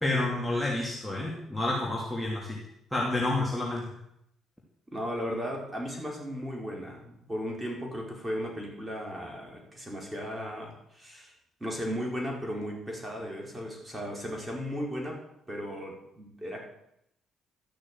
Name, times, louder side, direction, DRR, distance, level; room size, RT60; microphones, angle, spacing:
voice 1, 0.0-2.6 2.9-3.9, left 2 dB, 5° left, -4 dB, 3.0 m, -29 dB
voice 2, 4.9-11.3 11.6-15.2 15.5-16.6, equal, 15° right, -1 dB, 4.8 m, -36 dB
13.0 x 6.7 x 7.5 m, 0.77 s
supercardioid pair, 60°, 0 cm